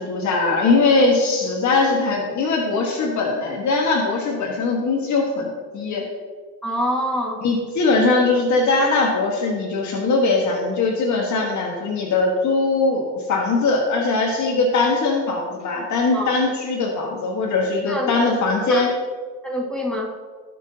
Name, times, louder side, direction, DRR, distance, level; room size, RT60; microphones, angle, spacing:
voice 1, 0.0-6.1 7.4-18.9, left 3 dB, 70° left, 0 dB, 1.6 m, -21 dB
voice 2, 6.6-7.4 16.1-16.4 17.9-18.1 18.7-18.8 19.4-20.1, equal, 5° left, -3 dB, 1.9 m, -25 dB
16.5 x 6.1 x 2.9 m, 1.5 s
cardioid pair, 90°, 30 cm